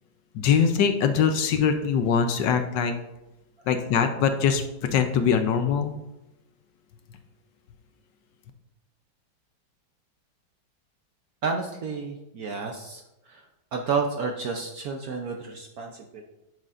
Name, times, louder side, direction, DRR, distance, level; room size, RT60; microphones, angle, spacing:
voice 1, 0.3-2.9 3.7-4.6 4.9-6.0, left 7 dB, 70° left, 7 dB, 1.2 m, -22 dB
voice 2, 11.4-13.0 13.3-13.4 13.7-16.2, right 5 dB, 65° right, 2 dB, 0.9 m, -30 dB
10.5 x 6.5 x 2.5 m, 0.95 s
omnidirectional pair, 2.2 m